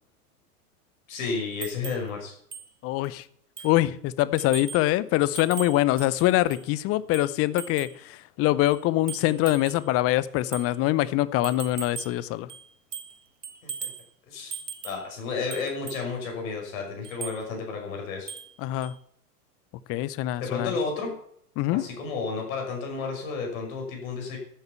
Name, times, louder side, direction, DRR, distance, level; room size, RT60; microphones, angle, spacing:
voice 1, 1.1-2.3 13.8-13.9 14.3-14.6 14.8-18.3 20.4-21.1 21.7-24.4, left 4 dB, 60° left, 5.9 m, -32 dB
sound 1, 1.6-2.1 2.5-2.7 3.0-3.1 3.6-3.8 4.4-4.9 5.4-6.7 7.1-8.0 8.7-9.9 10.5-10.7 11.4-12.2 12.5-13.2 13.4-14.1 14.5-15.1 15.5-16.1 17.0-17.4 18.3-18.5 18.8-18.9, right 6 dB, 80° right, 1.6 m, -39 dB
voice 2, 2.8-3.2 3.6-12.5 18.6-18.9 19.9-20.7 21.6-21.8, left 16 dB, 30° left, 0.7 m, -24 dB
12.5 x 7.9 x 7.1 m
figure-of-eight pair, 95°, 47 cm